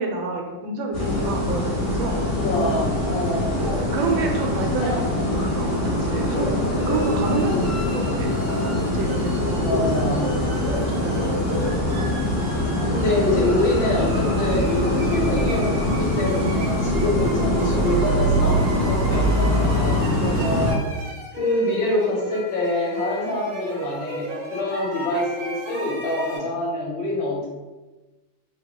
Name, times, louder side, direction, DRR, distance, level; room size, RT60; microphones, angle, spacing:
voice 1, 0.0-2.2 3.8-5.0 5.3-6.5 6.9-11.8 20.4-20.6, right 4 dB, 90° right, 2 dB, 1.4 m, -29 dB
sound 1, 0.9-20.7, left 1 dB, 30° left, 1.6 m, -23 dB
voice 2, 2.3-3.6 4.8-5.4 7.3-7.7 9.6-10.3 11.0-11.4 12.9-20.8 21.3-27.5, left 2 dB, 85° left, -3 dB, 1.6 m, -26 dB
sound 2, 6.8-26.4, right 2 dB, 60° right, 0.8 m, -38 dB
3.4 x 2.3 x 3.5 m, 1.1 s
omnidirectional pair, 2.1 m